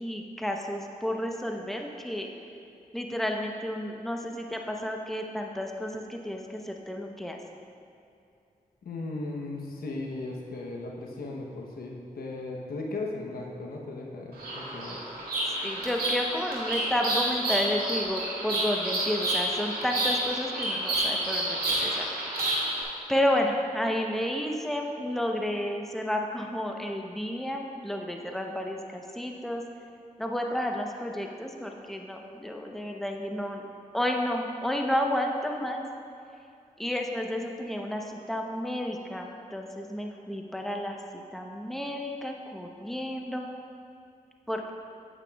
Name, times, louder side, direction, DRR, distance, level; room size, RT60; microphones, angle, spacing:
voice 1, 0.0-2.3 2.9-7.4 15.6-22.6 23.1-29.6 30.2-33.7 33.9-35.8 36.8-41.0 41.3-43.5 44.5-44.7, left 1 dB, ahead, 2 dB, 0.8 m, -31 dB
voice 2, 8.8-15.0, left 2 dB, 85° left, -1 dB, 0.9 m, -37 dB
Bird vocalization bird call bird song, 14.3-22.8, right 1 dB, 85° right, 1.7 m, -29 dB
9.0 x 8.1 x 2.3 m, 2.6 s
cardioid pair, 45°, 15 cm